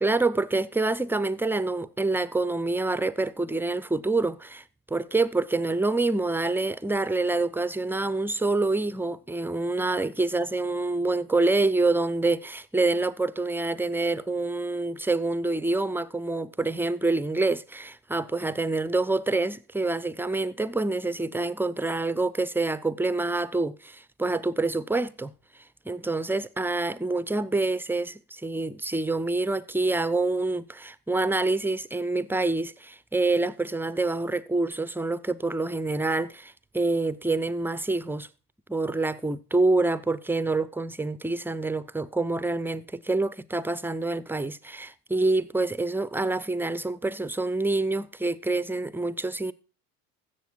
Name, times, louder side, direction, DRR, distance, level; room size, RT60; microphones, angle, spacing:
voice 1, 0.0-4.6 4.9-25.3 25.9-38.3 38.7-49.5, right 2 dB, 5° right, 0.4 m, -27 dB
15.0 x 6.7 x 4.4 m
hypercardioid pair, 70°, 47 cm